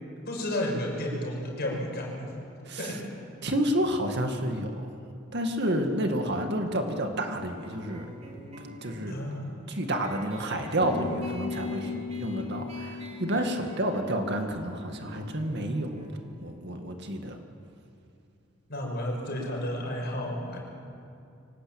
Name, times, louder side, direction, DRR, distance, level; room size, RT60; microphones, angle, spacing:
voice 1, 0.3-2.3 2.8-3.0 9.1-9.6 18.7-20.6, left 1 dB, 50° left, 0 dB, 6.0 m, -32 dB
voice 2, 2.7-3.0 3.4-4.9 5.3-8.1 8.6-9.2 9.7-16.1 16.4-17.4, right 1 dB, 55° right, 4 dB, 2.2 m, -30 dB
sound 1, 7.6-18.7, right 1 dB, 30° right, 3.5 m, -48 dB
sound 2, 10.8-15.5, left 4 dB, 70° left, 1.0 m, -38 dB
24.5 x 18.5 x 8.9 m, 2.5 s
head